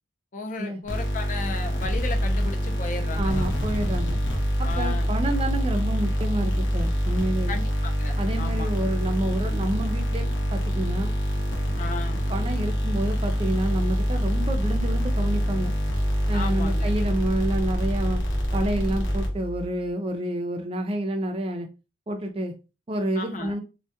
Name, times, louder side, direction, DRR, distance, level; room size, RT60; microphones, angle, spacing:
voice 1, 0.3-3.5 4.6-5.1 7.5-8.8 11.8-12.2 16.3-16.9 23.1-23.5, left 3 dB, 40° left, 0.4 m, -35 dB
sound 1, 0.9-19.6, equal, 70° left, 0.7 m, -25 dB
voice 2, 3.2-4.2 4.6-7.6 8.2-10.3 10.5-11.1 12.3-15.7 16.3-18.2 18.5-21.7 22.1-22.5 22.9-23.6, right 1 dB, 30° right, 0.4 m, -29 dB
2.2 x 2.1 x 2.7 m
head